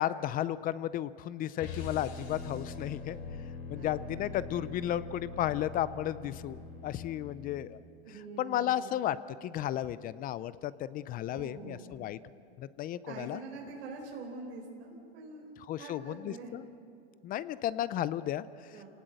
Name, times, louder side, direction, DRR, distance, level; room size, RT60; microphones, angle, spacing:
voice 1, 0.0-3.2 3.7-7.8 8.1-12.2 12.6-13.4 15.7-16.6 17.2-18.8, left 12 dB, 25° left, 17 dB, 0.5 m, -34 dB
sound 1, 1.6-7.7, left 4 dB, 70° left, 5.0 m, -43 dB
voice 2, 3.7-4.4 8.0-8.9 11.3-11.9 13.1-15.5 15.8-16.6 18.7-18.9, right 3 dB, 85° right, -1 dB, 4.3 m, -45 dB
27.0 x 18.5 x 7.8 m, 2.4 s
supercardioid pair, 130°, 32 cm